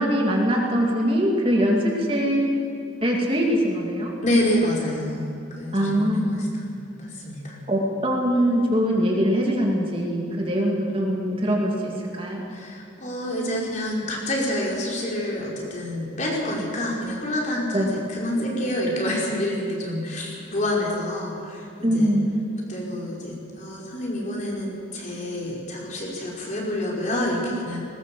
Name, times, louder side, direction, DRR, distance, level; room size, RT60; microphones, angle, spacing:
voice 1, 0.0-2.5 3.0-4.1 5.7-6.4 7.7-12.4 17.7-17.9 21.8-22.2, equal, 30° right, -1 dB, 2.7 m, -22 dB
voice 2, 4.2-5.3 5.6-7.6 12.5-22.1 22.7-27.8, left 1 dB, 40° left, -3 dB, 4.8 m, -28 dB
20.0 x 19.0 x 7.8 m, 2.6 s
head